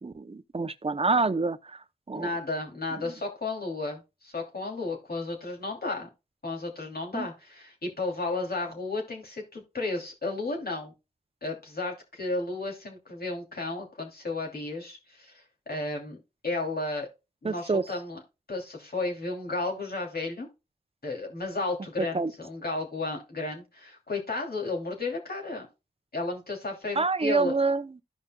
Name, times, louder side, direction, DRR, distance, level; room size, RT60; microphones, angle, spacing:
voice 1, 0.0-1.6 2.1-2.3 7.1-7.3 17.4-17.8 22.1-22.3 27.0-27.9, right 3 dB, 35° right, 0.7 m, -26 dB
voice 2, 2.1-6.1 6.4-10.9 11.4-16.2 16.4-17.1 17.4-18.2 18.5-20.5 21.0-25.7 26.1-27.6, left 2 dB, 60° left, 2.8 m, -33 dB
14.5 x 5.2 x 2.3 m
wide cardioid pair, 60°, 18 cm